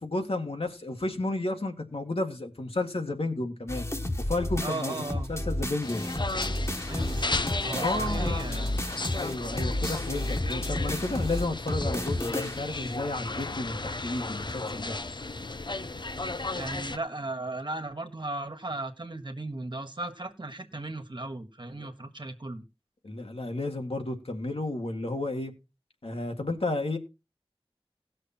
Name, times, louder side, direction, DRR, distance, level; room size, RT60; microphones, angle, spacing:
voice 1, 0.0-3.9 4.2-4.9 5.3-6.0 7.7-8.5 9.1-15.0 21.7-21.9 23.0-25.5 26.0-27.0, left 2 dB, 75° left, 1.9 m, -32 dB
sound 1, 3.7-12.8, left 1 dB, 30° left, 1.4 m, -32 dB
voice 2, 4.6-5.3 6.8-7.3 7.6-8.8 16.5-22.6, right 2 dB, 50° right, 1.5 m, -36 dB
sound 2, 5.8-17.0, left 2 dB, 50° left, 0.6 m, -34 dB
17.0 x 6.5 x 4.3 m
wide cardioid pair, 40°, 10 cm